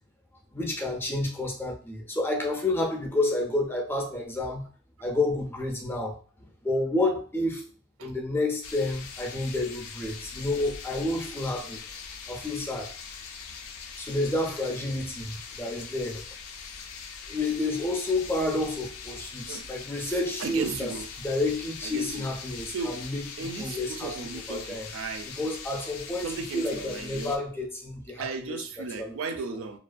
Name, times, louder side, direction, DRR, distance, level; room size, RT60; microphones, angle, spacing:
voice 1, 0.5-4.7 5.0-7.7 8.0-11.8 12.3-12.9 14.0-16.2 17.3-20.9 21.2-24.9 25.4-29.1, left 2 dB, 10° left, 1 dB, 0.4 m, -30 dB
sound 1, 8.6-27.4, left 5 dB, 85° left, 0.4 m, -42 dB
voice 2, 20.0-21.1 21.8-22.3 22.7-23.0 23.4-25.3 26.2-27.3 28.2-29.8, right 4 dB, 65° right, 8 dB, 0.4 m, -35 dB
2.3 x 2.1 x 2.4 m, 0.38 s
head